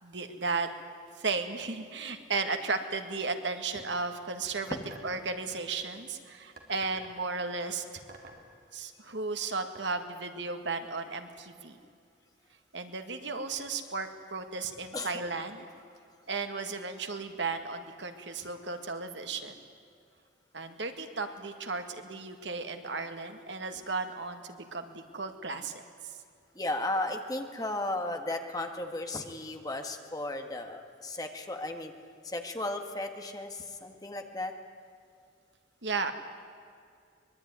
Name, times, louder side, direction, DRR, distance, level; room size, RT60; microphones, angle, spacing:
voice 1, 0.0-0.7 1.2-4.8 5.0-8.0 8.7-11.8 12.7-15.7 16.3-19.5 20.5-26.1 35.8-36.1, right 4 dB, 70° right, 7 dB, 1.9 m, -35 dB
sound 1, 4.9-5.3 6.6-7.2 8.1-8.5 9.7-9.8, right 2 dB, 50° right, 3.1 m, -48 dB
voice 2, 26.5-31.9 32.2-34.5, left 2 dB, 20° left, 4 dB, 1.8 m, -35 dB
24.0 x 21.5 x 9.6 m, 2.3 s
head